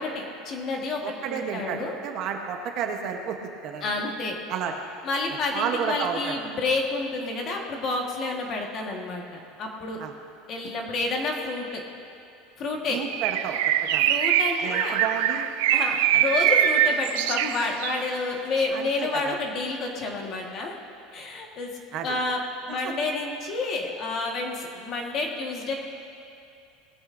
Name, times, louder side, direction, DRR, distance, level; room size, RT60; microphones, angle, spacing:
voice 1, 0.0-1.9 3.8-4.4 5.0-9.2 9.6-10.0 10.5-11.8 12.6-13.0 14.1-14.9 15.7-20.7 21.1-21.7 22.0-25.7, left 3 dB, 30° left, 1 dB, 1.4 m, -29 dB
voice 2, 1.0-3.9 4.5-4.7 5.5-6.3 10.0-10.1 12.9-14.1 14.6-15.4 18.7-19.4 21.9-22.1 22.7-22.9, right 7 dB, 35° right, 3 dB, 0.9 m, -31 dB
Bird, 13.1-18.0, right 10 dB, 75° right, 0.5 m, -23 dB
19.5 x 14.0 x 2.6 m, 2.6 s
cardioid pair, 180°, 0 cm